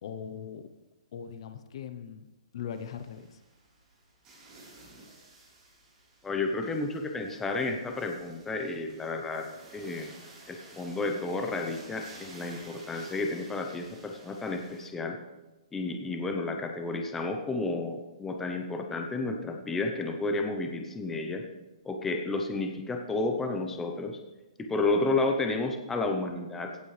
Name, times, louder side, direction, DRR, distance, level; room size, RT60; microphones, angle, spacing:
voice 1, 0.0-0.6 1.1-2.3 2.5-3.4, left 8 dB, 50° left, 10 dB, 0.8 m, -40 dB
sound 1, 2.7-14.9, right 2 dB, 20° right, 3.9 m, -53 dB
voice 2, 6.2-9.4 9.7-10.1 10.5-15.2 15.7-21.4 21.8-24.2 24.7-26.8, left 3 dB, 10° left, 4 dB, 0.8 m, -31 dB
17.0 x 8.4 x 3.3 m, 1.0 s
hypercardioid pair, 160°, 4 cm